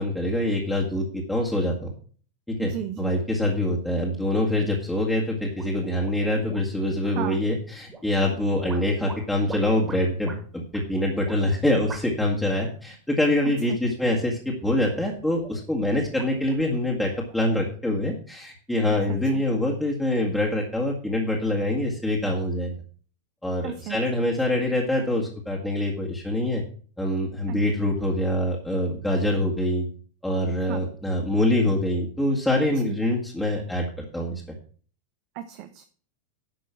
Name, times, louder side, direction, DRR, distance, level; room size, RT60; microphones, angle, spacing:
voice 1, 0.0-1.9 2.5-2.7 3.0-22.7 23.4-26.6 27.0-29.9 30.2-34.4, left 1 dB, 5° left, -3 dB, 2.1 m, -25 dB
voice 2, 2.6-3.1 7.0-7.4 13.4-13.8 19.1-19.4 23.6-24.0 27.5-27.6 30.6-30.8 32.8-33.0 35.3-35.8, right 11 dB, 45° right, 8 dB, 0.9 m, -34 dB
sound 1, 5.6-6.9 7.9-8.3 8.7-10.4 10.7-10.8 11.2-11.4 11.9-12.3 12.6-12.9 13.8-14.4 14.8-15.7 16.0-17.6, right 4 dB, 15° right, 2.5 m, -43 dB
11.0 x 6.1 x 5.9 m, 0.43 s
figure-of-eight pair, 90°, 0 cm